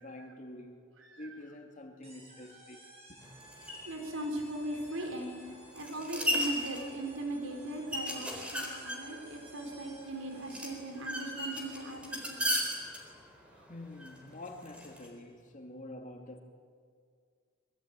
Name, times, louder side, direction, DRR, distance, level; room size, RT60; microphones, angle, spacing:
voice 1, 0.0-0.9 1.2-2.8 3.1-3.3 13.7-16.4, left 1 dB, 40° left, 2.6 m, -47 dB
sound 1, 2.0-10.9, right 1 dB, 30° right, 8.0 m, -56 dB
sound 2, 3.2-15.1, equal, 5° right, 4.2 m, -37 dB
voice 2, 3.8-12.5 13.5-13.6, right 1 dB, 85° right, 4.8 m, -39 dB
25.0 x 22.5 x 9.0 m
head